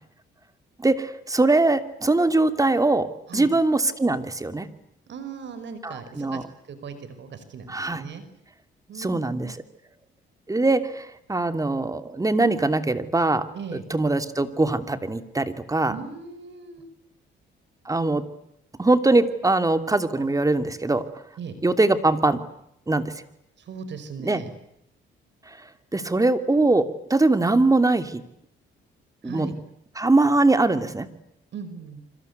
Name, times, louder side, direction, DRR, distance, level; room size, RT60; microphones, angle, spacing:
voice 1, 0.8-3.1 3.3-4.7 5.8-6.4 7.7-8.0 9.0-9.6 10.5-13.4 13.9-15.9 17.9-18.2 18.8-21.0 21.6-22.4 22.9-23.1 24.2-24.4 25.9-28.2 29.2-29.5 30.0-31.1, right 2 dB, 15° right, 10 dB, 2.8 m, -22 dB
voice 2, 5.1-6.4 6.7-8.2 8.9-9.5 13.5-13.8 15.9-16.9 21.4-21.6 23.6-24.5 29.2-29.5 31.5-32.0, right 5 dB, 65° right, 12 dB, 5.2 m, -38 dB
27.0 x 26.0 x 8.3 m, 0.76 s
cardioid pair, 90°, 20 cm